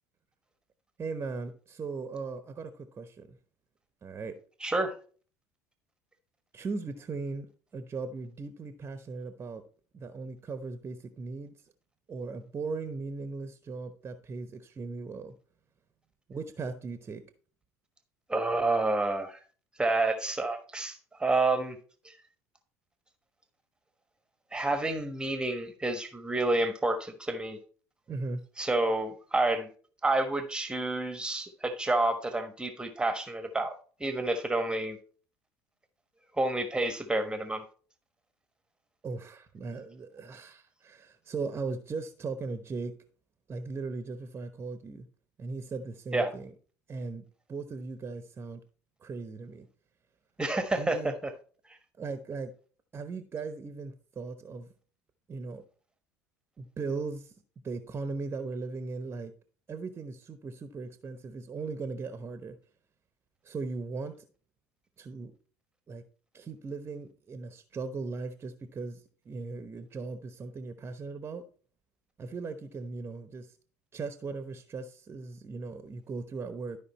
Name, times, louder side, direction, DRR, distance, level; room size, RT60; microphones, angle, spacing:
voice 1, 1.0-3.4 4.0-4.3 6.5-9.6 9.9-11.5 12.1-15.3 16.3-17.2 28.1-28.4 39.0-43.0 43.5-45.1 45.4-46.5 46.9-48.6 49.0-49.7 50.8-51.1 52.0-52.5 52.9-54.7 55.3-55.6 56.6-57.3 57.6-59.3 59.7-62.6 63.4-64.3 65.0-65.3 65.9-66.0 66.3-71.4 72.2-73.6 73.9-76.8, right 4 dB, 30° right, 9 dB, 1.0 m, -38 dB
voice 2, 4.6-4.9 18.3-19.4 19.8-21.8 22.0-22.1 24.5-27.6 28.6-29.7 30.0-33.7 34.0-35.0 36.4-37.6 46.1-46.3 50.4-51.3, right 2 dB, 10° right, 8 dB, 1.3 m, -29 dB
12.5 x 5.2 x 4.2 m, 0.41 s
figure-of-eight pair, 65°, 9 cm